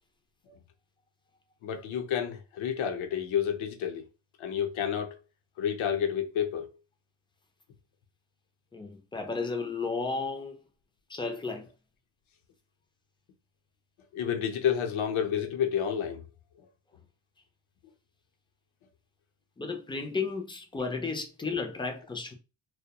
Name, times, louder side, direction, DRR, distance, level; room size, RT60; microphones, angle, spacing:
voice 1, 1.6-4.0 4.4-5.2 5.6-6.7 14.1-16.2 16.6-16.7, left 8 dB, 75° left, 0.7 m, -30 dB
voice 2, 8.7-10.6 11.1-11.7 19.6-22.3, left 4 dB, 10° left, 0.3 m, -33 dB
2.2 x 2.1 x 2.8 m
cardioid pair, 130°, 48 cm